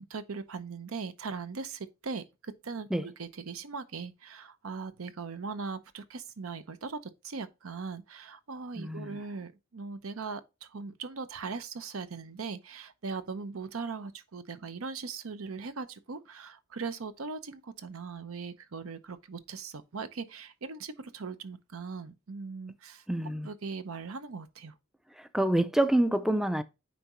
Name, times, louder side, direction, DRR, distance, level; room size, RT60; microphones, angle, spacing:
voice 1, 0.1-7.0 7.2-23.0 23.4-24.7, right 4 dB, 90° right, 0.7 m, -39 dB
voice 2, 8.8-9.2 23.1-23.5 25.2-26.6, right 1 dB, ahead, 0.3 m, -27 dB
9.3 x 3.5 x 3.0 m
head